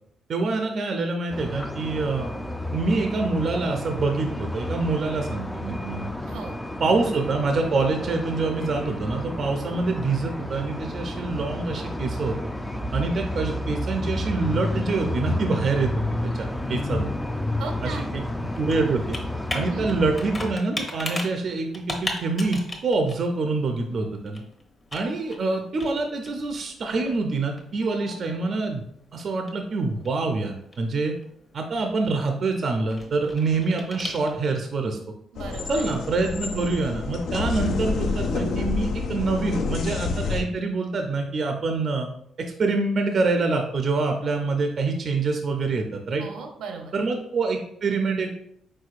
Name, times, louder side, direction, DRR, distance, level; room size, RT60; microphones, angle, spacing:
voice 1, 0.3-2.3 2.7-6.1 6.8-12.4 12.9-15.9 16.3-17.1 17.8-18.2 18.6-19.2 19.5-24.4 24.9-28.8 29.1-31.1 31.5-35.0 35.7-42.1 42.6-46.3 46.9-48.3, right 3 dB, 50° right, 4 dB, 0.5 m, -26 dB
sound 1, 1.3-20.5, left 1 dB, 5° left, 0.4 m, -31 dB
voice 2, 6.2-6.5 17.6-18.1 19.5-19.8 35.3-35.8 46.2-46.9, right 5 dB, 85° right, 3 dB, 0.8 m, -36 dB
Computer keyboard, 16.4-34.7, left 2 dB, 25° left, 0.9 m, -39 dB
sound 2, 35.4-40.4, left 4 dB, 65° left, 0.5 m, -28 dB
4.6 x 4.3 x 2.4 m, 0.71 s
cardioid pair, 115°, 0 cm